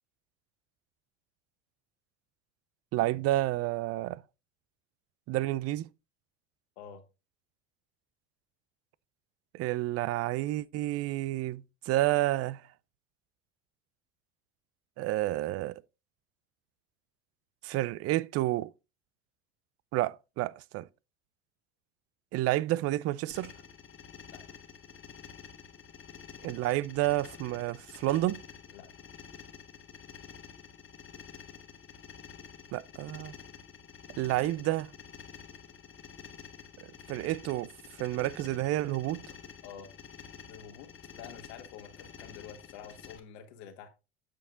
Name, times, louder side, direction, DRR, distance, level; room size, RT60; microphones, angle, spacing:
voice 1, 2.9-4.2 5.3-5.9 9.5-12.6 15.0-15.8 17.6-18.7 19.9-20.9 22.3-23.5 26.4-28.4 32.7-33.3 34.2-34.9 37.1-37.7 38.0-39.2, right 16 dB, 45° right, 0.5 m, -30 dB
sound 1, 23.3-43.2, left 7 dB, 35° left, 1.5 m, -49 dB
voice 2, 40.5-43.9, left 8 dB, 70° left, 1.6 m, -48 dB
8.3 x 6.3 x 3.7 m
hypercardioid pair, 80°, 34 cm